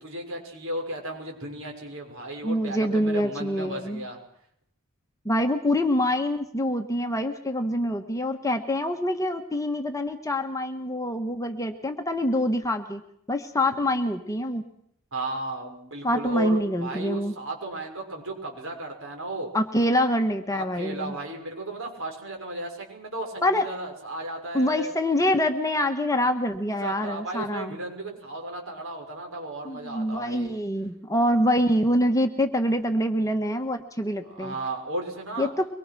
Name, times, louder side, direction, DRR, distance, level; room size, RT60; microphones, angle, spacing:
voice 1, 0.0-4.2 15.1-19.5 19.8-20.0 20.5-24.9 26.8-30.6 34.3-35.5, right 1 dB, 60° right, 2 dB, 6.3 m, -35 dB
voice 2, 2.4-4.1 5.2-13.0 13.3-14.7 16.0-17.3 19.5-21.1 23.4-23.6 24.5-27.8 29.6-34.5 35.4-35.7, left 1 dB, 15° left, 6 dB, 1.4 m, -25 dB
24.0 x 22.5 x 6.2 m, 0.69 s
head